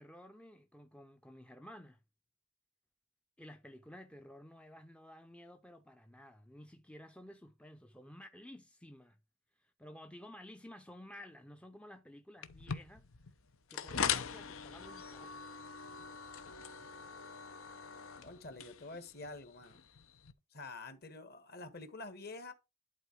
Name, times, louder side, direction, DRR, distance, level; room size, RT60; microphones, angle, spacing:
voice 1, 0.0-2.0 3.4-9.2 9.6-13.1 13.7-15.3, left 1 dB, 5° left, 0.5 m, -53 dB
sound 1, 12.4-20.3, left 7 dB, 80° left, 0.9 m, -42 dB
voice 2, 18.2-19.8 20.5-22.5, left 3 dB, 45° left, 1.6 m, -47 dB
11.5 x 3.9 x 4.7 m
head